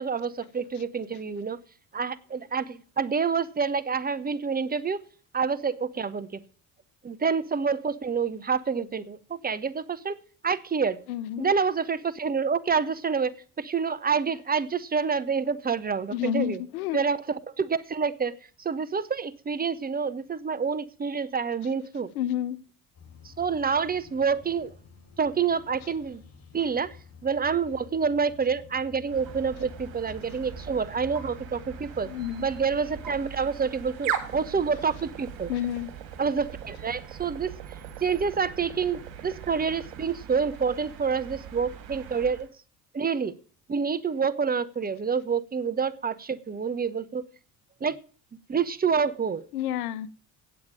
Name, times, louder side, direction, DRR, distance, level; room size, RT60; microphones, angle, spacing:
voice 1, 0.0-1.6 1.9-5.0 5.3-6.4 7.0-10.2 10.4-11.0 11.4-13.3 13.6-16.6 16.9-22.1 23.2-24.7 25.2-26.2 26.5-27.0 27.2-32.1 32.4-35.5 36.2-37.6 38.0-42.5 42.9-43.3 43.7-47.2 47.8-48.0 48.5-49.4, right 5 dB, 20° right, 0.7 m, -27 dB
voice 2, 11.1-11.5 16.1-17.0 22.2-22.6 32.1-32.5 35.5-35.9 49.5-50.1, left 11 dB, 75° left, 0.7 m, -30 dB
sound 1, 22.9-33.2, left 6 dB, 35° left, 5.6 m, -50 dB
sound 2, 29.1-42.5, right 9 dB, 70° right, 2.1 m, -40 dB
8.8 x 7.7 x 7.5 m
hypercardioid pair, 55°, 44 cm